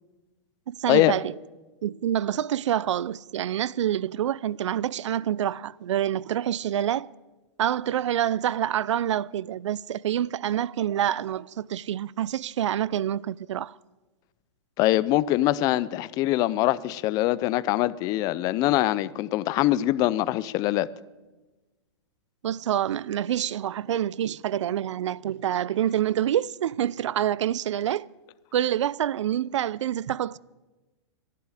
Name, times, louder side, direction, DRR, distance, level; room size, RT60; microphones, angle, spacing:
voice 1, 0.7-1.3 1.8-7.1 7.6-13.7 22.4-28.1 28.5-30.4, right 11 dB, 90° right, 0.5 m, -27 dB
voice 2, 14.8-20.9, left 15 dB, 25° left, 0.4 m, -23 dB
24.5 x 11.5 x 4.9 m
hypercardioid pair, 155°, 15 cm